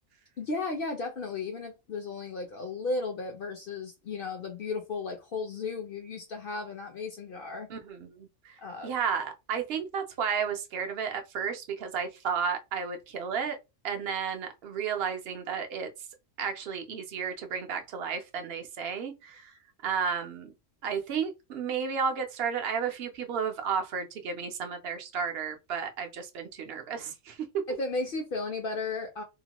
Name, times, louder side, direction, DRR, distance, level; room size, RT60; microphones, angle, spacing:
voice 1, 0.4-7.7 8.6-8.9 27.7-29.2, left 3 dB, 60° left, 0.6 m, -34 dB
voice 2, 7.7-8.5 8.8-13.6 13.8-15.9 16.4-19.5 19.8-20.5 20.8-27.4, right 6 dB, 60° right, 0.7 m, -32 dB
2.8 x 2.1 x 2.8 m
omnidirectional pair, 1.4 m